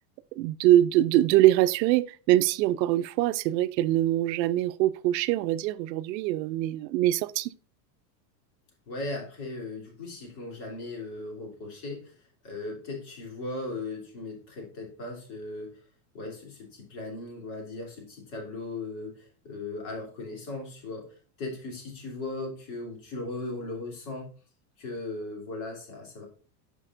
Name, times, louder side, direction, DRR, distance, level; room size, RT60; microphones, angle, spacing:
voice 1, 0.3-7.5, right 14 dB, 85° right, 0.6 m, -23 dB
voice 2, 8.9-12.1 12.4-15.8 16.1-24.3 24.8-26.2, left 2 dB, 50° left, 3.0 m, -38 dB
9.8 x 5.3 x 2.5 m
supercardioid pair, 150°, 50 cm